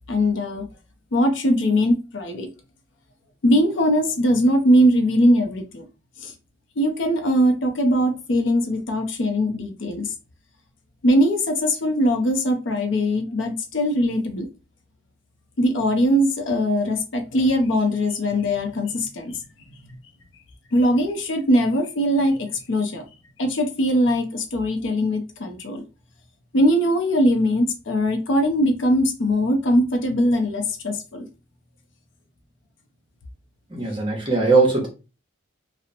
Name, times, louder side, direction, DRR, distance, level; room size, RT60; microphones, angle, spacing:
voice 1, 0.1-0.7 1.1-2.5 3.4-5.8 6.2-6.3 6.8-10.1 11.0-14.5 15.6-19.3 20.7-23.0 23.4-25.8 26.5-31.3, equal, 70° left, 0.5 m, -21 dB
voice 2, 33.7-34.9, right 3 dB, 25° right, 0.7 m, -19 dB
2.8 x 2.0 x 2.5 m
head